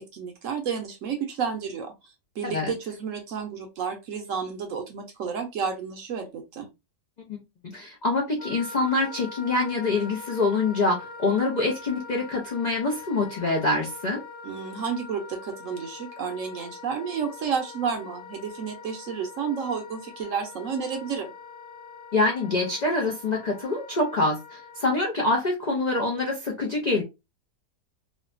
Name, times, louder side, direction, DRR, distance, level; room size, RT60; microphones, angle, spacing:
voice 1, 0.0-6.7 14.4-21.3, right 6 dB, 70° right, 0.8 m, -31 dB
voice 2, 7.3-14.2 22.1-27.0, left 2 dB, 80° left, 0.4 m, -25 dB
Wind instrument woodwind instrument, 8.4-25.0, left 5 dB, 25° left, 0.7 m, -43 dB
3.1 x 2.1 x 2.4 m
omnidirectional pair, 1.7 m